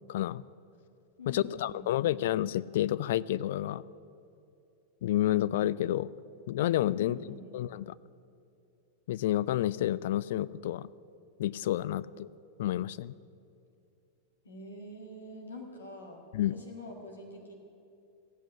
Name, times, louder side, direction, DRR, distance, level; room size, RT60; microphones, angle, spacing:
voice 1, 0.1-0.4 1.3-3.8 5.0-6.1 6.5-7.2 7.5-7.9 9.1-10.9 11.4-12.3 12.6-13.1 16.3-16.6, left 13 dB, 55° left, 18 dB, 0.3 m, -29 dB
voice 2, 1.2-2.2 6.9-7.6 14.4-16.2 16.5-17.5, left 1 dB, 75° left, 0 dB, 1.9 m, -46 dB
15.5 x 8.2 x 10.0 m, 2.6 s
figure-of-eight pair, 90°, 0 cm